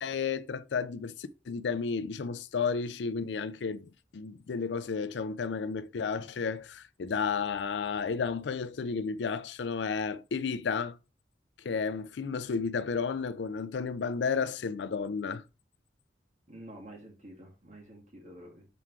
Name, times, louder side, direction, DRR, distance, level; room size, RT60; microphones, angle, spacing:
voice 1, 0.0-11.0 11.6-15.4, left 5 dB, 75° left, 0.4 m, -32 dB
voice 2, 16.5-18.7, right 1 dB, 40° right, 2.0 m, -49 dB
5.9 x 3.7 x 4.6 m
head